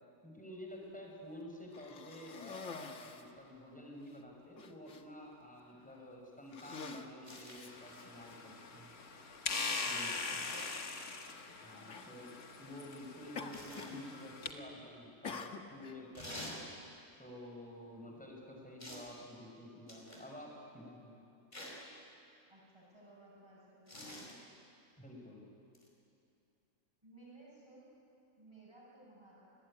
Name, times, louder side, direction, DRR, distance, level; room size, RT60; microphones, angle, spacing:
voice 1, 0.2-8.9 9.8-10.4 11.6-12.3 12.6-16.6 17.2-21.2 25.0-25.5, left 1 dB, 5° left, -1 dB, 5.7 m, -50 dB
Cough, 1.7-3.3 4.1-4.2 4.6-5.0 5.8-6.0 6.4-8.4 9.3-9.4 11.2-11.5 11.9-12.2 13.4-14.0 14.3-14.7 15.2-16.0, left 5 dB, 60° left, 1.7 m, -48 dB
sound 1, 7.3-7.6 10.5-10.9 13.5-13.9 16.2-16.6 18.8-19.1 19.9-20.3 21.5-21.9 23.9-24.3 25.8-25.9, left 1 dB, 30° left, 5.3 m, -47 dB
sound 2, 7.7-14.5, left 4 dB, 80° left, 2.2 m, -42 dB
voice 2, 10.2-11.4 11.7-12.1 22.5-24.4 27.0-27.9 28.4-29.5, right 2 dB, 20° right, -11 dB, 7.9 m, -59 dB
29.0 x 20.5 x 10.0 m, 2.7 s
omnidirectional pair, 1.5 m